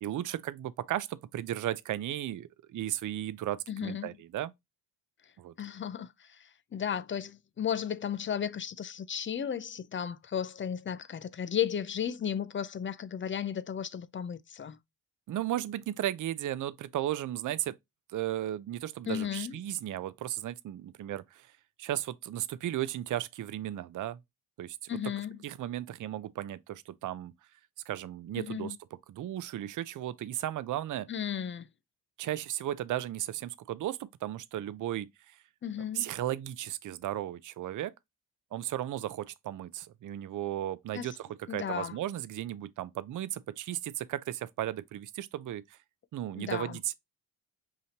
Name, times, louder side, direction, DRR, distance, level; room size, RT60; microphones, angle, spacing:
voice 1, 0.0-4.5 5.4-5.5 15.3-17.8 18.1-21.5 21.8-24.2 24.6-24.8 25.4-27.3 27.9-28.8 29.1-31.1 32.2-35.1 35.9-37.9 38.5-45.8 46.1-46.9, right 13 dB, 45° right, 0.4 m, -35 dB
voice 2, 3.7-4.1 5.6-14.8 19.1-19.6 24.9-25.4 28.4-28.8 31.1-31.7 35.6-36.1 40.9-41.1 41.5-41.9 46.4-46.8, left 8 dB, 30° left, 0.4 m, -34 dB
4.9 x 2.8 x 2.8 m
cardioid pair, 75°, 45 cm